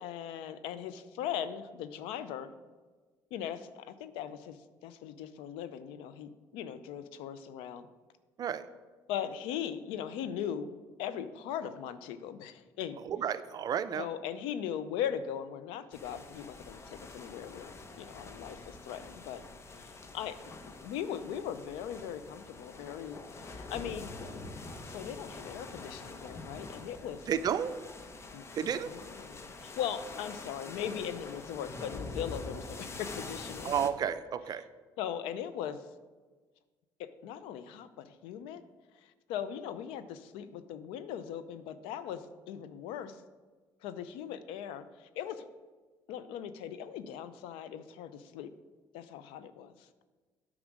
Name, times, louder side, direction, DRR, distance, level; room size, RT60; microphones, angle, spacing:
voice 1, 0.0-2.5 3.3-7.9 9.1-13.0 13.9-19.4 19.8-20.4 20.6-24.1 24.8-27.3 28.3-33.8 35.0-35.9 37.0-38.6 39.0-43.2 43.8-45.5 46.1-48.5 48.9-49.9, left 9 dB, 90° left, 13 dB, 0.5 m, -39 dB
voice 2, 13.1-14.1 27.3-27.7 28.6-28.9 33.6-34.6, right 8 dB, 50° right, 12 dB, 0.5 m, -31 dB
sound 1, 15.9-33.9, left 3 dB, 30° left, 0.8 m, -45 dB
8.8 x 4.9 x 6.2 m, 1.3 s
cardioid pair, 95°, 9 cm